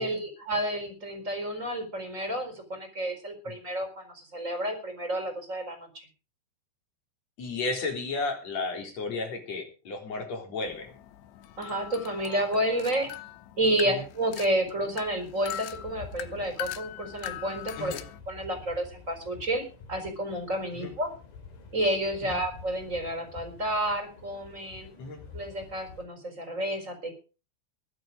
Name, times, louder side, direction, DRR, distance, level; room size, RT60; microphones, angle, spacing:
voice 1, 0.0-6.1 11.6-13.1 13.6-17.9 18.3-21.1 21.7-24.9 25.3-27.1, right 1 dB, 15° right, 6 dB, 4.1 m, -30 dB
voice 2, 7.4-10.9 13.9-14.0 17.8-18.0 20.8-20.9 22.2-22.4 25.0-25.2, left 3 dB, 40° left, 2 dB, 4.7 m, -33 dB
sound 1, 10.7-18.2, left 12 dB, 85° left, 3.2 m, -41 dB
sound 2, 15.7-26.1, left 5 dB, 55° left, 5.9 m, -48 dB
22.5 x 7.8 x 5.1 m, 0.35 s
omnidirectional pair, 5.2 m